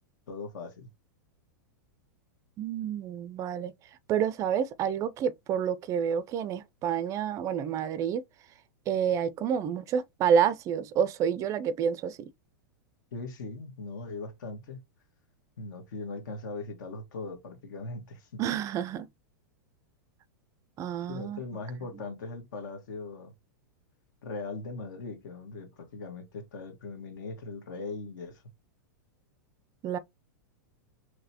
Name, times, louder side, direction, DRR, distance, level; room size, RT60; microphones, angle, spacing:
voice 1, 0.3-0.9 13.1-14.8 15.6-18.4 21.1-23.3 24.2-28.4, left 3 dB, 70° left, 1.6 m, -39 dB
voice 2, 2.6-3.7 4.1-8.2 8.9-12.3 18.4-19.1 20.8-21.4 29.8-30.0, right 8 dB, 30° right, 0.4 m, -28 dB
3.9 x 3.1 x 2.8 m
hypercardioid pair, 130°, 11 cm